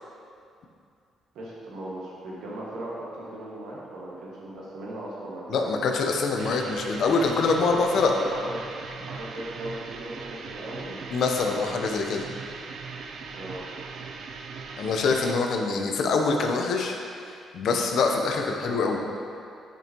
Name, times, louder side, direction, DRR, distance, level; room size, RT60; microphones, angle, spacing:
voice 1, 1.4-5.7 7.7-8.7 9.1-11.0 13.3-13.7, right 1 dB, 80° right, -6 dB, 1.7 m, -38 dB
voice 2, 5.5-8.1 11.1-12.3 14.8-19.0, left 4 dB, 70° left, 2 dB, 0.7 m, -25 dB
sound 1, 6.4-15.3, right 5 dB, 65° right, 0.5 m, -39 dB
9.0 x 5.3 x 3.0 m, 2.4 s
cardioid pair, 90°, 0 cm